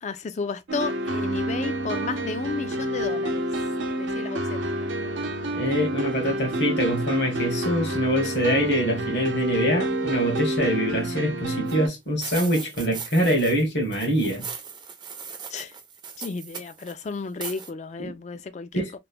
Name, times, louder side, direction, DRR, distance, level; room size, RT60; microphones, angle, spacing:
voice 1, 0.0-3.4 3.9-5.2 8.2-8.3 15.5-15.7 16.2-19.0, left 4 dB, 40° left, 0.3 m, -33 dB
sound 1, 0.7-11.9, right 1 dB, 90° right, 0.7 m, -28 dB
voice 2, 5.5-14.5 18.0-18.1 18.7-19.0, equal, 65° left, 1.2 m, -24 dB
sound 2, 11.7-11.8 12.2-13.7 13.9-16.9 17.4-17.7, right 6 dB, 25° right, 0.5 m, -38 dB
3.0 x 2.1 x 2.4 m
head